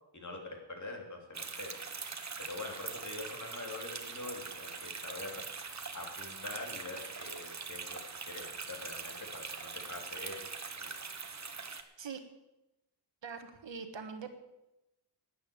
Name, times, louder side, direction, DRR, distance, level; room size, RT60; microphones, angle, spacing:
voice 1, 0.1-1.7 2.4-5.4 5.9-8.0 8.3-10.4 10.7-10.9, left 2 dB, 40° left, 1 dB, 3.2 m, -44 dB
sound 1, 1.3-11.8, right 4 dB, 35° right, 1.2 m, -43 dB
voice 2, 13.2-14.3, right 5 dB, 70° right, 7 dB, 1.7 m, -42 dB
12.0 x 9.9 x 8.7 m, 0.94 s
wide cardioid pair, 140°, 46 cm